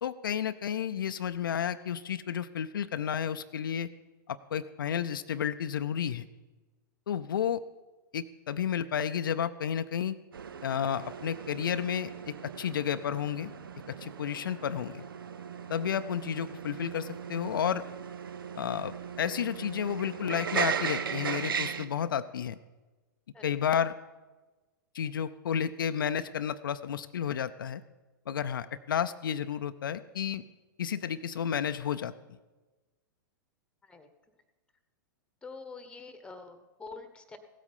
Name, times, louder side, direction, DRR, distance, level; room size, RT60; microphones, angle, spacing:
voice 1, 0.0-3.9 4.3-6.3 7.1-7.6 8.1-10.2 10.6-13.5 13.9-15.0 15.7-17.8 18.6-22.6 23.4-23.9 24.9-27.8 28.3-30.4 30.8-32.1, left 8 dB, 75° left, 11 dB, 0.5 m, -32 dB
sound 1, 10.3-21.9, right 7 dB, 80° right, 0.7 m, -37 dB
voice 2, 35.4-37.4, left 4 dB, 10° left, 9 dB, 1.2 m, -46 dB
16.0 x 8.3 x 5.5 m, 1.2 s
hypercardioid pair, 105°, 11 cm